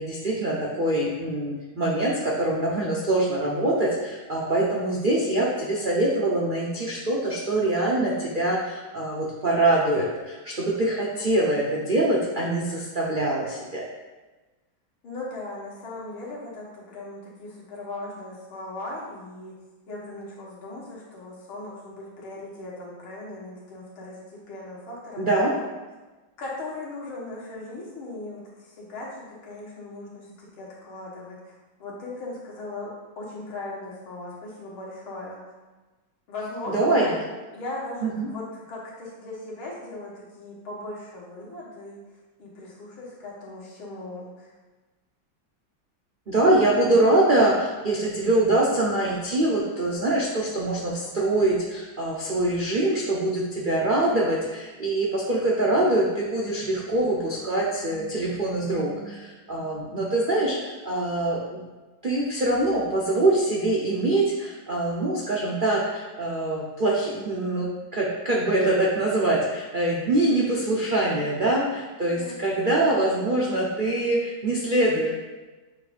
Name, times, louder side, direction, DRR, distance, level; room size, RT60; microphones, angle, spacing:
voice 1, 0.0-13.8 25.2-25.5 36.7-37.1 38.0-38.3 46.3-61.6 62.0-75.1, right 2 dB, 85° right, -5 dB, 0.4 m, -24 dB
voice 2, 15.0-19.5 19.9-25.7 26.4-31.5 31.8-35.4 36.3-37.2 37.5-42.0 42.4-44.5 72.2-72.3, left 2 dB, 90° left, -5 dB, 2.3 m, -38 dB
7.5 x 2.6 x 5.0 m, 1.2 s
omnidirectional pair, 2.2 m